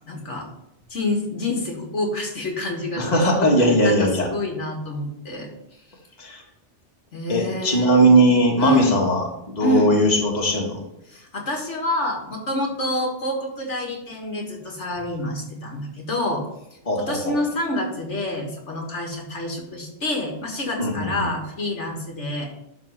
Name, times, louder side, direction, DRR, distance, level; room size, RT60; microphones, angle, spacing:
voice 1, 0.1-0.5 0.9-3.1 3.6-5.5 7.1-8.1 8.6-9.0 9.6-9.9 11.1-16.4 17.0-22.5, left 1 dB, 75° left, 1 dB, 2.0 m, -27 dB
voice 2, 3.0-4.3 6.2-6.4 7.3-10.8 16.9-17.3 20.8-21.3, right 1 dB, 35° left, -1 dB, 1.8 m, -19 dB
11.5 x 4.1 x 5.7 m, 0.85 s
omnidirectional pair, 1.2 m